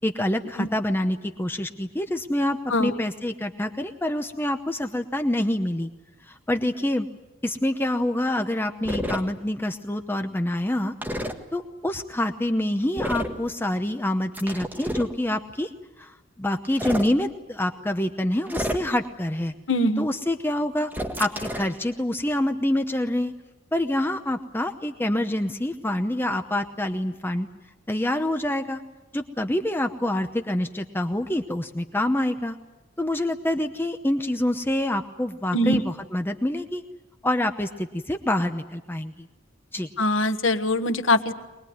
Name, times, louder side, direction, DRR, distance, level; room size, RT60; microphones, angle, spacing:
voice 1, 0.0-5.9 6.3-7.1 7.4-10.9 11.5-15.7 16.0-19.5 20.0-20.9 21.2-23.3 23.7-27.5 27.9-28.8 29.1-32.6 33.0-36.8 37.2-39.3 39.7-39.9, left 1 dB, 10° left, 6 dB, 0.8 m, -26 dB
sound 1, 8.8-9.2 11.0-11.3 13.0-13.4 14.3-15.1 16.6-17.1 18.5-19.1 20.9-21.7, equal, 10° right, 1.7 m, -29 dB
voice 2, 19.7-20.1 35.5-35.8 40.0-41.3, left 1 dB, 80° left, 7 dB, 1.5 m, -22 dB
23.5 x 20.5 x 9.5 m, 1.1 s
head